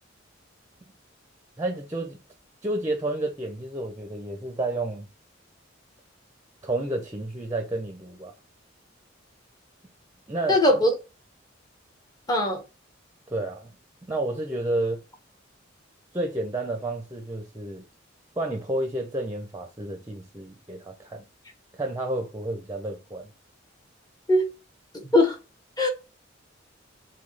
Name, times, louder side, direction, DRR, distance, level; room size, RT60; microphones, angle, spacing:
voice 1, 1.6-2.2 2.6-5.1 6.6-8.3 10.3-10.6 13.3-13.7 14.1-15.0 16.1-17.8 18.4-21.3 21.7-23.3, right 2 dB, 15° right, 0.7 m, -30 dB
voice 2, 10.5-10.9 12.3-12.6 24.3-24.5 24.9-25.4 25.8-25.9, left 1 dB, 20° left, 1.1 m, -20 dB
5.8 x 2.3 x 3.3 m
head